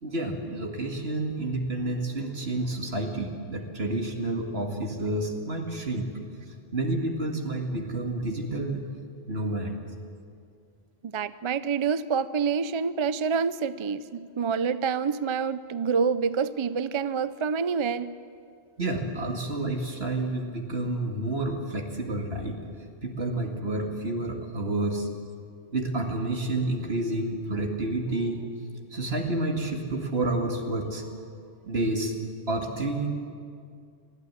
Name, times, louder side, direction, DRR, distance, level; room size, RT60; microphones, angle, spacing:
voice 1, 0.0-6.1 6.7-8.8 9.3-9.7 18.8-22.6 23.0-25.1 25.7-28.4 28.9-31.1 31.6-32.1 32.5-33.1, right 2 dB, 70° right, 2 dB, 2.4 m, -29 dB
voice 2, 11.1-18.1, right 6 dB, 40° right, 14 dB, 0.4 m, -27 dB
20.5 x 14.0 x 9.8 m, 2.3 s
omnidirectional pair, 1.1 m